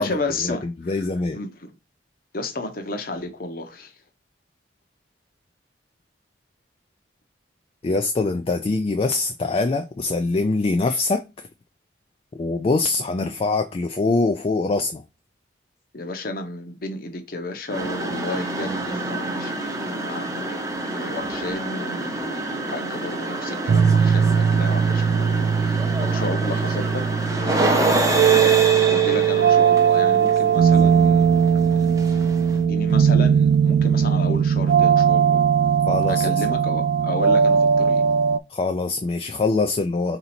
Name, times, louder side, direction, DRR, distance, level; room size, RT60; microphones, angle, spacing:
voice 1, 0.0-1.1 1.3-1.7 2.3-3.9 13.2-13.3 15.9-28.2 28.9-32.3 32.5-35.4 36.1-38.0, left 2 dB, 50° left, 0.8 m, -32 dB
voice 2, 0.9-1.4 7.8-11.5 12.3-15.0 35.9-36.4 38.5-40.2, left 3 dB, 30° left, 0.3 m, -23 dB
sound 1, 17.7-32.6, right 2 dB, 20° right, 0.7 m, -27 dB
sound 2, 23.7-38.4, right 7 dB, 70° right, 0.3 m, -19 dB
4.0 x 2.8 x 4.1 m
head